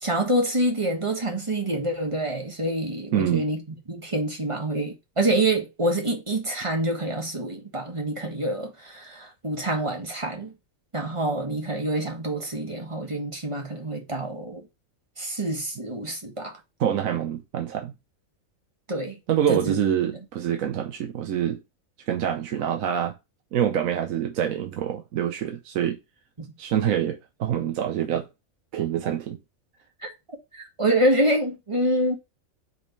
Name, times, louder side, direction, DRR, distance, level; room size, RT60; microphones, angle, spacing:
voice 1, 0.0-3.6 3.9-10.5 10.9-14.6 15.2-16.6 18.9-19.2 19.5-19.8 26.4-26.5 30.0-30.1 30.5-32.2, right 1 dB, 20° right, 1.4 m, -26 dB
voice 2, 3.1-3.4 16.8-17.9 19.3-21.6 22.1-23.2 23.5-26.0 26.6-28.3 28.7-29.4, right 9 dB, 75° right, 1.1 m, -26 dB
5.4 x 3.6 x 5.3 m
omnidirectional pair, 1.5 m